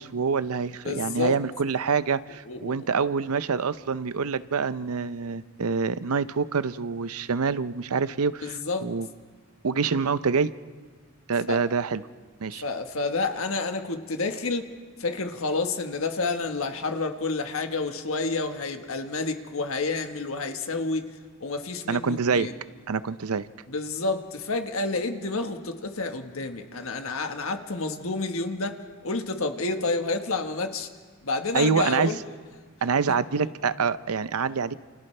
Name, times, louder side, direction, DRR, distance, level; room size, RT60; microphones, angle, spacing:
voice 1, 0.0-9.1 9.6-10.5 11.3-12.0 12.4-12.6 21.9-22.5 22.9-23.5 31.5-32.1 32.8-34.7, right 5 dB, 85° right, 14 dB, 0.6 m, -26 dB
voice 2, 0.8-1.3 2.5-2.9 8.4-8.9 11.5-11.6 12.6-14.7 15.0-21.1 21.4-22.5 23.7-28.8 29.0-30.9 31.2-32.2, left 3 dB, 70° left, 6 dB, 1.4 m, -29 dB
29.5 x 29.0 x 3.3 m, 1.5 s
head